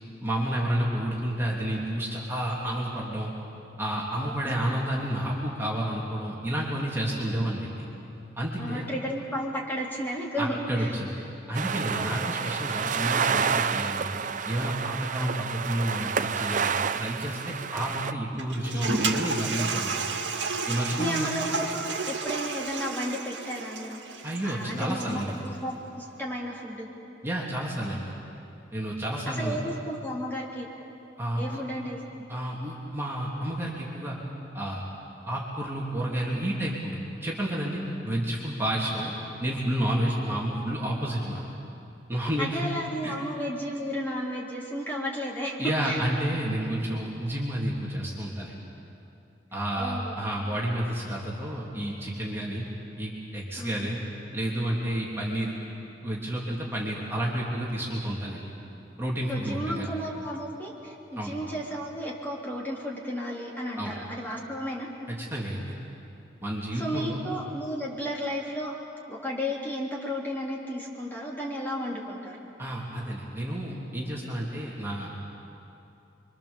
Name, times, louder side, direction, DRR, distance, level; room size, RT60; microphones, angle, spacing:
voice 1, 0.2-3.3 3.8-7.9 8.4-8.8 10.4-11.1 11.5-14.1 14.5-16.7 17.0-20.0 20.7-21.3 24.2-25.3 27.2-28.1 28.7-29.6 31.2-31.6 32.3-34.2 34.5-34.8 35.2-39.1 39.4-41.4 42.1-42.7 43.0-43.2 45.6-48.6 49.5-52.6 53.0-54.0 54.3-55.5 56.0-58.5 59.0-59.9 61.2-61.4 63.8-63.9 65.1-65.7 66.4-67.2 72.6-75.1, right 1 dB, 15° right, -4 dB, 3.1 m, -30 dB
voice 2, 4.2-4.5 8.6-10.9 11.9-12.1 21.0-24.0 24.4-26.9 29.3-30.7 31.4-32.0 42.4-46.0 49.7-50.2 53.6-53.9 59.3-64.9 66.7-68.7 69.1-72.4, equal, 10° left, -4 dB, 3.7 m, -33 dB
sound 1, 11.5-18.1, right 6 dB, 45° right, 0.6 m, -29 dB
Toilet flush, 18.4-25.3, right 4 dB, 70° right, 1.9 m, -32 dB
29.0 x 24.5 x 7.2 m, 2.8 s
head